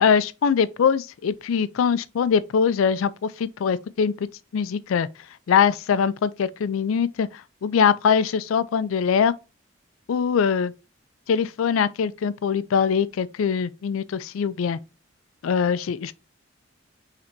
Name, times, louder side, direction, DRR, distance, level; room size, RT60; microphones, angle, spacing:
voice 1, 0.0-4.3 4.5-5.1 5.5-9.3 10.1-10.7 11.3-14.8 15.4-16.1, left 6 dB, 85° left, 0.4 m, -22 dB
5.8 x 3.3 x 2.6 m
head